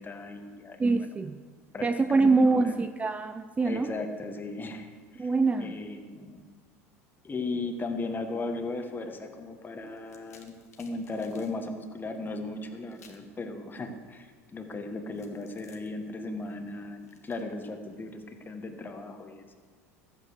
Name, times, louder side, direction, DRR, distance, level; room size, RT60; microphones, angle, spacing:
voice 1, 0.0-1.1 1.7-1.9 2.1-2.8 3.6-5.3 5.6-6.4 7.2-19.5, left 3 dB, 25° left, 6 dB, 1.8 m, -37 dB
voice 2, 0.8-1.4 1.8-3.9 5.2-5.8, right 3 dB, 15° right, 10 dB, 0.6 m, -24 dB
sound 1, 9.9-11.6 12.9-13.3 15.1-18.2, left 6 dB, 85° left, 1.8 m, -59 dB
14.0 x 8.8 x 6.8 m, 1.5 s
hypercardioid pair, 75°, 8 cm